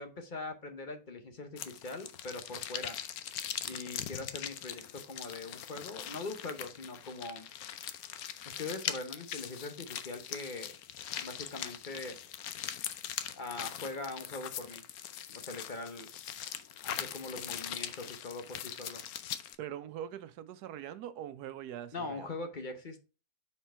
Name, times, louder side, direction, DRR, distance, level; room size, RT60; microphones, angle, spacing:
voice 1, 0.0-3.0 3.7-7.5 8.4-10.8 11.2-12.2 13.4-14.8 15.3-16.1 16.8-19.0 21.9-23.0, left 3 dB, 40° left, 0.8 m, -42 dB
sound 1, 1.6-19.6, left 10 dB, 75° left, 1.1 m, -41 dB
voice 2, 19.6-22.3, right 10 dB, 80° right, 1.2 m, -42 dB
5.8 x 4.4 x 4.5 m
omnidirectional pair, 1.7 m